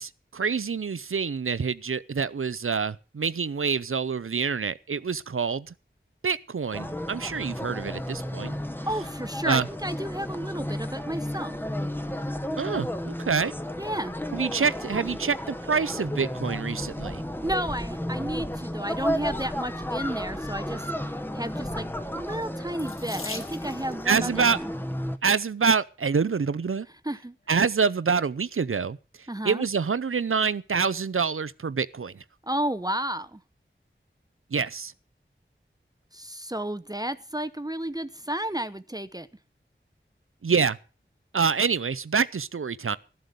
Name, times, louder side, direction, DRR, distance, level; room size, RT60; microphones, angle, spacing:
voice 1, 0.0-5.7 6.2-8.5 9.5-9.7 12.6-13.5 14.3-17.2 24.1-24.6 25.2-26.9 27.5-29.0 29.4-32.2 34.5-34.9 40.4-40.8 41.3-43.0, right 5 dB, 85° right, 0.6 m, -26 dB
sound 1, 6.7-25.2, left 1 dB, 10° left, 1.1 m, -33 dB
voice 2, 8.9-11.6 13.8-14.2 17.4-20.8 21.3-21.8 22.1-24.7 27.0-27.4 29.3-29.7 32.5-33.4 36.1-39.3, right 1 dB, 20° right, 0.7 m, -32 dB
Water tap faucet / Sink (filling or washing), 22.8-24.0 25.0-25.4 26.1-26.2 26.6-26.7, left 3 dB, 85° left, 1.5 m, -40 dB
14.0 x 7.7 x 6.8 m
wide cardioid pair, 50°, 21 cm